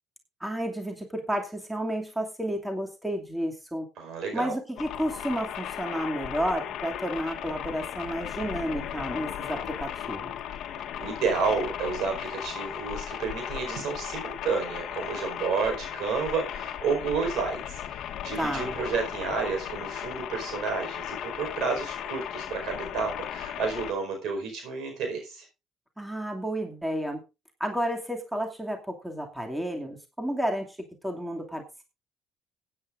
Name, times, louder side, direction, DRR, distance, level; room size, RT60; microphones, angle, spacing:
voice 1, 0.4-3.9 4.3-10.4 18.4-18.8 26.0-27.2 27.6-31.6, equal, 5° right, 2 dB, 2.5 m, -31 dB
voice 2, 4.0-4.5 11.0-25.4, right 5 dB, 70° right, 4 dB, 4.9 m, -31 dB
sound 1, 4.8-23.9, left 10 dB, 70° left, 1.2 m, -36 dB
18.0 x 9.5 x 2.6 m, 0.27 s
supercardioid pair, 75°, 0 cm